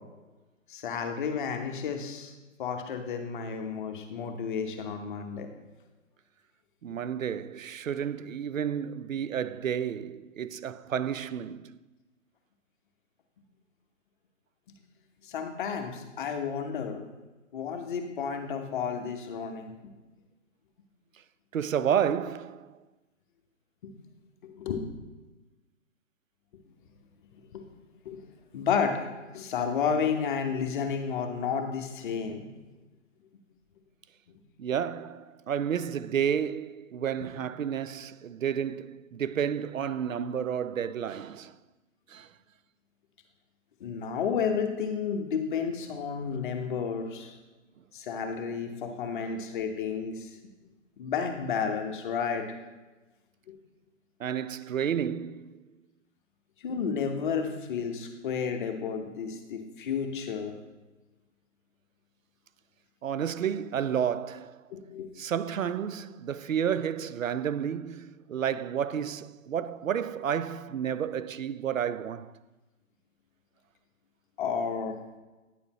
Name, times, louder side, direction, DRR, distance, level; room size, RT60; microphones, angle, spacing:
voice 1, 0.7-2.3 2.6-5.5 15.3-17.0 17.5-19.7 23.8-23.9 24.6-24.8 27.3-27.6 28.0-28.2 28.5-29.1 29.3-32.4 43.8-47.3 47.9-50.3 51.0-52.5 53.5-53.6 56.6-60.5 64.7-65.1 74.4-75.0, left 6 dB, 40° left, 1.1 m, -31 dB
voice 2, 6.8-11.8 21.5-22.8 34.6-41.6 42.1-42.3 49.1-49.3 54.2-55.6 63.0-64.7 65.2-72.3, right 8 dB, 85° right, 0.5 m, -31 dB
9.7 x 7.0 x 3.0 m
figure-of-eight pair, 135°, 38 cm